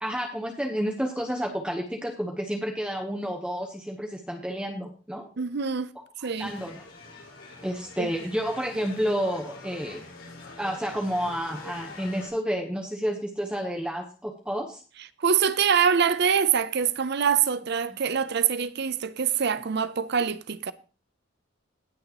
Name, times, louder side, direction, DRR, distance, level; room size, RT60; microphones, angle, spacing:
voice 1, 0.0-5.3 6.2-6.8 7.6-10.1 10.6-14.8 17.9-18.0, equal, 5° right, 1.0 m, -30 dB
voice 2, 5.4-5.9 6.2-6.5 8.0-8.1 15.2-20.7, right 7 dB, 55° right, 0.6 m, -24 dB
sound 1, 6.3-12.3, left 3 dB, 80° left, 5.0 m, -45 dB
19.0 x 6.6 x 2.9 m
head